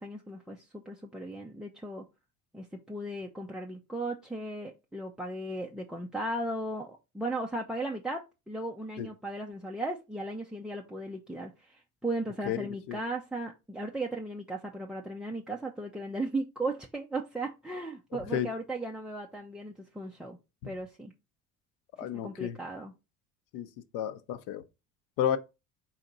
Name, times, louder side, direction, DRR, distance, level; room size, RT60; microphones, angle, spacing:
voice 1, 0.0-2.1 2.5-20.4 20.6-21.1 22.0-22.9, right 2 dB, ahead, 0.3 m, -36 dB
voice 2, 12.5-13.0 18.3-18.5 22.0-22.6 23.5-23.7 23.9-24.6 25.2-25.4, left 10 dB, 60° left, 0.6 m, -31 dB
4.1 x 2.9 x 3.8 m
hypercardioid pair, 65°, 42 cm